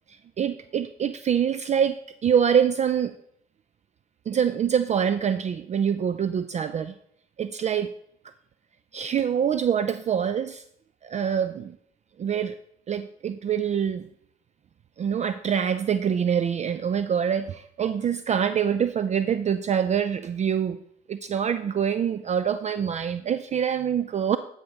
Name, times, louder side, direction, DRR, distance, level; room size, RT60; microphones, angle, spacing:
voice 1, 0.1-3.1 4.3-6.9 7.4-7.9 8.9-10.6 11.0-11.8 12.2-12.6 12.9-14.1 15.0-20.8 21.1-24.4, right 8 dB, 40° right, 12 dB, 0.4 m, -25 dB
9.4 x 5.4 x 3.5 m, 0.70 s
supercardioid pair, 65°, 19 cm